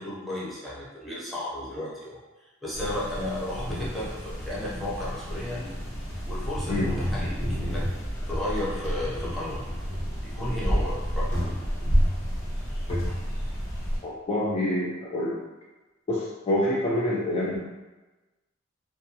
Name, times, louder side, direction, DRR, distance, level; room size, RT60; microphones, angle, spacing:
voice 1, 0.0-2.2 2.6-5.7 6.3-7.8 8.3-9.7 10.2-11.4, left 1 dB, ahead, -8 dB, 0.6 m, -34 dB
sound 1, 2.7-14.0, equal, 60° left, 0.8 m, -30 dB
voice 2, 14.0-15.4 16.1-17.6, left 1 dB, 30° left, -5 dB, 0.3 m, -27 dB
2.3 x 2.2 x 2.8 m, 1.1 s
head